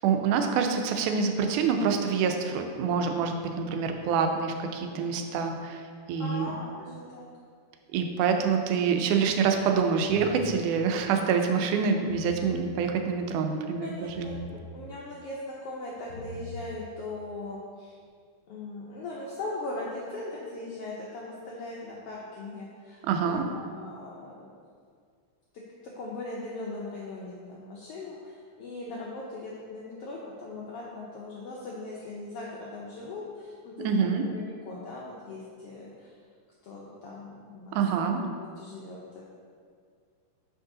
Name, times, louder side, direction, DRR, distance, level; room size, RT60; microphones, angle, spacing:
voice 1, 0.0-5.8 6.1-6.6 7.9-14.4 23.0-23.5 33.8-34.2 37.7-38.2, right 6 dB, 90° right, 4 dB, 2.1 m, -26 dB
voice 2, 4.9-5.2 6.2-7.3 13.8-14.4 14.7-17.9 18.5-24.5 26.0-28.1 28.6-35.9 36.6-37.8 38.0-39.2, left 2 dB, 80° left, -4 dB, 1.3 m, -39 dB
sound 1, 10.1-10.6 12.0-12.6 14.1-14.6 16.0-16.6, left 2 dB, 45° left, 2.0 m, -41 dB
6.1 x 5.3 x 3.8 m, 2.1 s
omnidirectional pair, 3.5 m